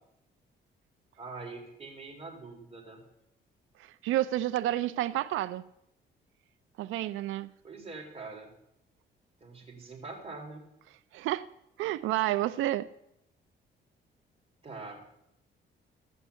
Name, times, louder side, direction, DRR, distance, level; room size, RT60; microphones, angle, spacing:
voice 1, 1.2-3.0 7.6-8.5 9.4-10.6 14.6-15.0, right 3 dB, 30° right, 0 dB, 3.6 m, -43 dB
voice 2, 4.0-5.6 6.8-7.5 11.1-11.4 11.8-12.9, right 14 dB, 90° right, 13 dB, 0.5 m, -29 dB
14.0 x 5.4 x 8.2 m, 0.80 s
cardioid pair, 90°, 20 cm